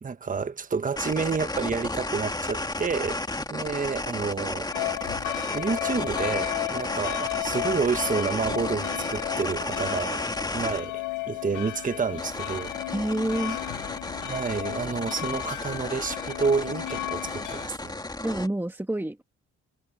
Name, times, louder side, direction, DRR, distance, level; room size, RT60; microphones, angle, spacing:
voice 1, 0.0-4.7 5.5-10.2 10.5-12.7 14.2-18.0, right 5 dB, 25° right, 1.3 m, -29 dB
sound 1, 1.0-10.8 12.2-18.5, left 2 dB, 15° left, 2.3 m, -33 dB
sound 2, 4.7-17.7, left 17 dB, 90° left, 0.8 m, -34 dB
voice 2, 12.9-13.6 18.2-19.2, right 1 dB, 5° right, 1.7 m, -28 dB
cardioid pair, 90°, 30 cm